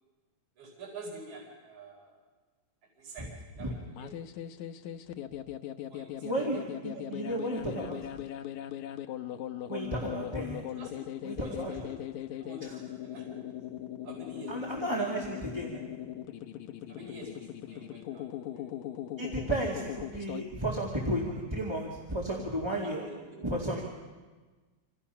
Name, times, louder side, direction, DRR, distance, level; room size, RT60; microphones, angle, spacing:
voice 1, 0.6-2.2 3.0-4.1 5.3-5.4 5.9-6.3 6.9-7.0 10.6-12.1 12.4-13.6 14.0-15.4 16.9-18.7 22.8-23.6, right 2 dB, 70° right, -3 dB, 6.0 m, -47 dB
sound 1, 3.9-20.4, left 12 dB, 75° left, 2.2 m, -39 dB
voice 2, 6.2-8.2 9.7-10.7 11.2-11.7 12.6-12.8 14.5-15.8 19.2-23.1 23.4-23.9, right 1 dB, 10° right, -3 dB, 2.0 m, -33 dB
27.5 x 27.0 x 5.8 m, 1.3 s
omnidirectional pair, 3.5 m